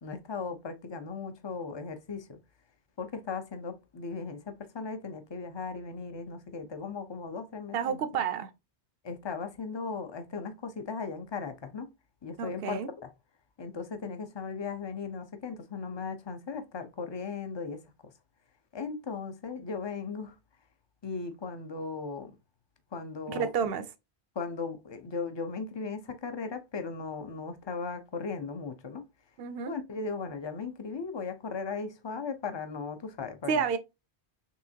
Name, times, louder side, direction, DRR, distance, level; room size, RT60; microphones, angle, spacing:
voice 1, 0.0-2.4 3.0-8.0 9.0-11.9 12.2-12.8 13.6-17.8 18.7-20.3 21.0-22.4 22.9-23.5 24.4-29.0 29.7-33.6, left 5 dB, 30° left, 0.7 m, -37 dB
voice 2, 7.7-8.5 12.4-12.9 23.3-23.9 29.4-29.8 33.5-33.8, right 7 dB, 65° right, 0.9 m, -30 dB
5.7 x 3.3 x 2.8 m
omnidirectional pair, 1.1 m